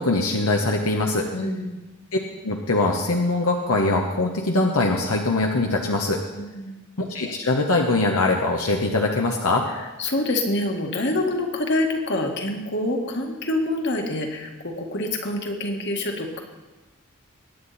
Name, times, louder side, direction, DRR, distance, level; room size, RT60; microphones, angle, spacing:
voice 1, 0.0-1.3 2.4-6.2 7.0-9.6, left 2 dB, 80° left, 1 dB, 1.2 m, -22 dB
voice 2, 1.3-1.8 6.3-6.8 9.7-16.4, left 1 dB, 55° left, 3 dB, 2.0 m, -26 dB
22.5 x 10.0 x 4.3 m, 1.1 s
head